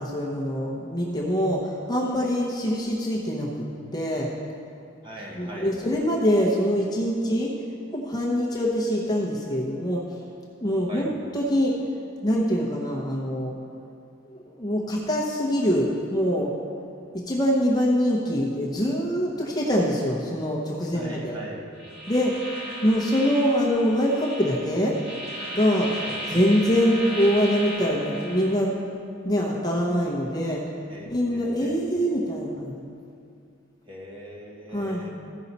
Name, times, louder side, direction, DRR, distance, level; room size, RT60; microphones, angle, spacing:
voice 1, 0.0-3.7 3.9-4.3 5.3-7.5 7.9-10.2 10.6-11.8 12.2-13.5 14.3-16.5 17.1-21.3 22.1-22.4 22.8-25.0 25.5-25.9 26.3-28.8 29.2-30.7 31.1-32.9 34.7-35.1, equal, 20° left, -3 dB, 0.9 m, -24 dB
voice 2, 5.0-5.8 10.9-11.1 20.9-21.6 25.9-26.1 30.9-31.8 33.9-35.1, equal, 25° right, -3 dB, 1.3 m, -40 dB
sound 1, 21.8-28.5, equal, 55° right, 1.6 m, -36 dB
14.5 x 5.6 x 4.1 m, 2.5 s
head